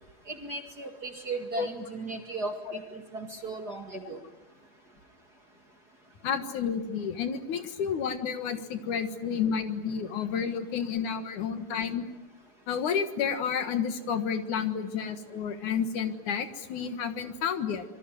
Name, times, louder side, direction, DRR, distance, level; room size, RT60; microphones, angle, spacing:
voice 1, 0.3-4.2, right 3 dB, 35° right, 5 dB, 2.0 m, -36 dB
voice 2, 6.2-12.1 12.7-17.8, left 7 dB, 65° left, 9 dB, 2.9 m, -30 dB
26.5 x 24.0 x 9.2 m, 0.91 s
omnidirectional pair, 3.8 m